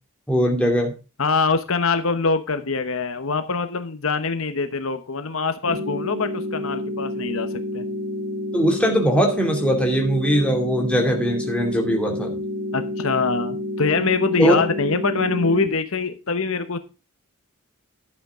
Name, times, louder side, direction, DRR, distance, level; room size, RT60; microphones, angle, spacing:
voice 1, 0.3-0.9 8.5-12.3 14.4-14.6, equal, 5° left, 1 dB, 2.6 m, -20 dB
voice 2, 1.2-7.8 12.7-16.8, left 4 dB, 65° left, 10 dB, 1.0 m, -24 dB
sound 1, 5.7-15.7, left 1 dB, 60° right, 2.3 m, -29 dB
11.5 x 8.7 x 3.7 m, 0.30 s
head